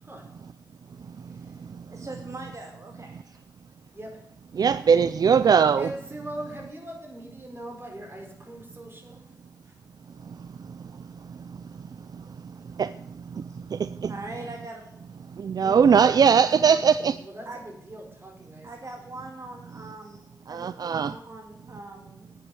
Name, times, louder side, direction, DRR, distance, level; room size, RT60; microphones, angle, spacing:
voice 1, 1.9-3.4 11.6-11.7 13.3-13.6 14.1-15.0 17.5-17.6 18.6-22.4, right 2 dB, 50° right, 2 dB, 2.1 m, -41 dB
voice 2, 3.9-4.2 5.8-9.2 9.6-9.7 15.6-18.7, right 1 dB, 35° right, 2 dB, 4.7 m, -41 dB
voice 3, 4.5-5.9 12.8-12.9 13.4-13.5 13.7-14.1 15.4-17.2 20.5-21.1, right 6 dB, 75° right, 14 dB, 0.4 m, -20 dB
10.0 x 8.4 x 7.8 m, 0.79 s
cardioid pair, 50°, 7 cm